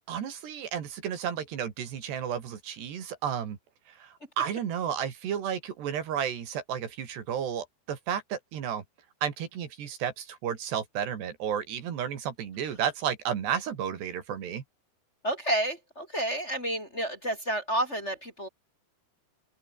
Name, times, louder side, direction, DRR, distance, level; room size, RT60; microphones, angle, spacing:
voice 1, 0.1-3.6 4.0-8.8 9.2-14.6, right 8 dB, 75° right, 5.0 m, -32 dB
voice 2, 15.2-18.5, right 1 dB, 15° left, 3.5 m, -30 dB
open air
omnidirectional pair, 4.8 m